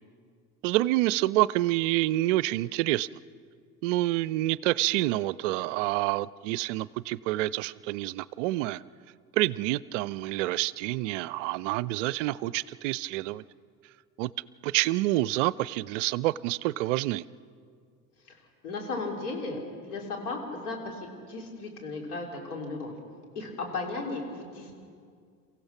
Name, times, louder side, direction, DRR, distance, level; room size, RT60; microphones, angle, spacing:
voice 1, 0.6-3.1 3.8-8.8 9.3-13.4 14.2-14.3 14.6-17.2, right 17 dB, 55° right, 21 dB, 0.5 m, -27 dB
voice 2, 18.3-22.9 23.4-24.7, left 3 dB, 70° left, 1 dB, 3.8 m, -36 dB
29.5 x 15.5 x 5.9 m, 2.2 s
figure-of-eight pair, 70°, 47 cm